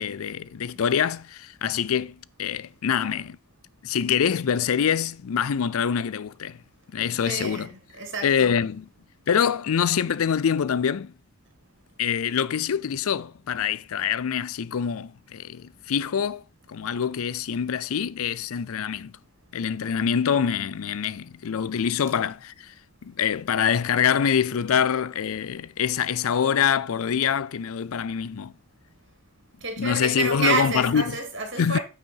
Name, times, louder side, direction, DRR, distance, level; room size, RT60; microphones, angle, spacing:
voice 1, 0.0-3.4 3.8-6.6 6.9-7.7 8.2-8.9 9.3-11.1 12.0-16.4 16.7-19.1 19.5-22.7 23.0-28.5 29.8-31.2 31.6-31.8, left 7 dB, 80° left, 0.4 m, -25 dB
voice 2, 7.2-8.5 29.6-31.8, right 4 dB, 55° right, 2.8 m, -29 dB
9.3 x 5.6 x 4.6 m
head